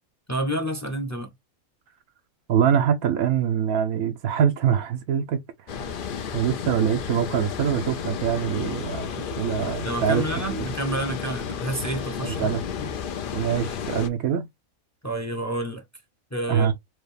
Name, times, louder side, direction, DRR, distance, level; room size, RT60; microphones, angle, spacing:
voice 1, 0.3-1.3 9.8-12.5 12.8-12.9 15.0-15.8 16.3-16.7, right 1 dB, 15° left, 0.6 m, -29 dB
voice 2, 2.5-5.4 5.7-5.9 6.3-10.2 10.5-10.7 12.2-12.6 13.3-14.5 16.5-16.7, right 8 dB, 80° right, 1.1 m, -24 dB
Water, 5.7-14.1, left 7 dB, 60° left, 0.5 m, -32 dB
4.7 x 2.4 x 3.3 m
omnidirectional pair, 1.5 m